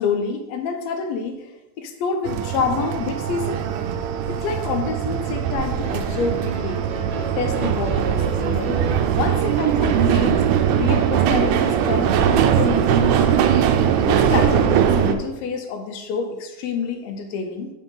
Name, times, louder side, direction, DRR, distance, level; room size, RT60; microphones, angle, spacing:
voice 1, 0.0-3.6 4.2-6.9 7.4-8.8 9.2-10.4 10.7-13.3 14.0-17.7, left 5 dB, 85° left, 5 dB, 1.5 m, -27 dB
sound 1, 2.3-15.1, right 8 dB, 80° right, 2.0 m, -20 dB
sound 2, 5.8-13.8, right 3 dB, 60° right, 1.3 m, -35 dB
9.2 x 3.6 x 3.8 m, 1.0 s
omnidirectional pair, 3.7 m